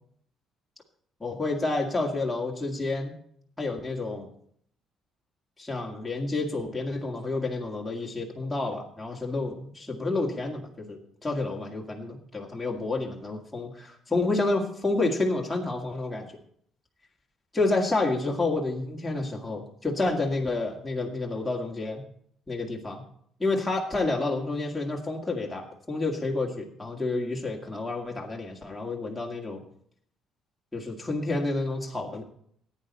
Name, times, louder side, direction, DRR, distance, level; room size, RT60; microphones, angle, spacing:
voice 1, 1.2-3.1 3.6-4.3 5.6-16.3 17.5-22.0 22.5-23.0 23.4-29.6 30.7-32.2, left 2 dB, 10° left, -2 dB, 2.1 m, -29 dB
14.5 x 9.5 x 4.2 m, 0.65 s
cardioid pair, 120°, 0 cm